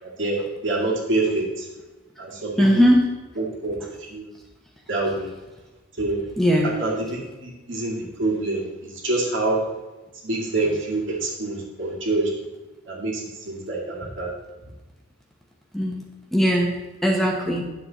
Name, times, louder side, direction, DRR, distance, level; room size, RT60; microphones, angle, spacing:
voice 1, 0.0-1.7 2.2-2.8 3.4-4.3 4.9-5.3 6.0-6.2 6.6-9.6 10.2-12.3 12.9-14.3, right 2 dB, 60° right, -2 dB, 2.2 m, -26 dB
voice 2, 2.6-3.1 6.4-6.8 15.7-16.0 16.3-16.8 17.0-17.6, equal, ahead, -1 dB, 1.0 m, -19 dB
10.5 x 7.4 x 4.1 m, 1.2 s
head